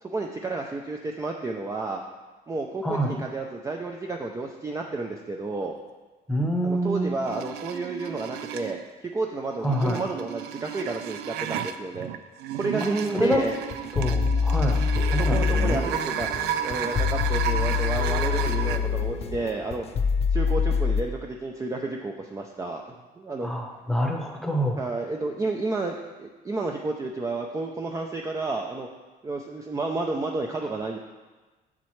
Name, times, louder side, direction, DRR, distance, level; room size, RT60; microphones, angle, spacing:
voice 1, 0.0-2.0 2.5-5.8 6.6-12.1 12.5-13.6 15.0-16.3 16.6-19.9 20.3-23.5 24.8-28.9 29.2-31.0, right 3 dB, 20° right, 2 dB, 0.5 m, -31 dB
voice 2, 6.3-7.2 9.6-10.0 13.1-13.4 13.9-14.8 15.1-15.8 23.4-24.8, equal, ahead, 2 dB, 0.9 m, -26 dB
sound 1, 7.2-8.8 9.5-18.8, right 10 dB, 85° right, 0.4 m, -33 dB
sound 2, 13.3-21.0, left 5 dB, 35° left, 0.5 m, -25 dB
7.4 x 6.9 x 3.2 m, 1.2 s
cardioid pair, 110°, 17 cm